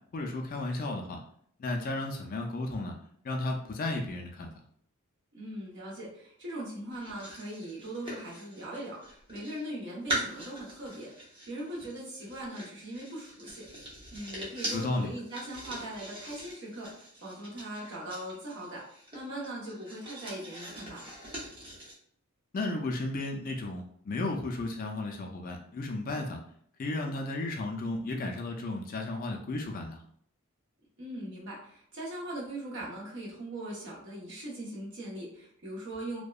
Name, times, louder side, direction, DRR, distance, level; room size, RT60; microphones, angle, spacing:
voice 1, 0.1-1.2 1.6-2.9 3.2-4.5 14.7-15.1 22.5-26.4 26.8-30.0, left 2 dB, 40° left, 2 dB, 0.3 m, -34 dB
voice 2, 5.3-11.1 11.5-13.7 14.1-21.1 31.0-36.2, right 1 dB, 55° right, -4 dB, 0.9 m, -40 dB
sound 1, 6.9-9.7 10.1-21.9, right 1 dB, 25° right, 0.7 m, -42 dB
2.7 x 2.1 x 2.3 m, 0.64 s
head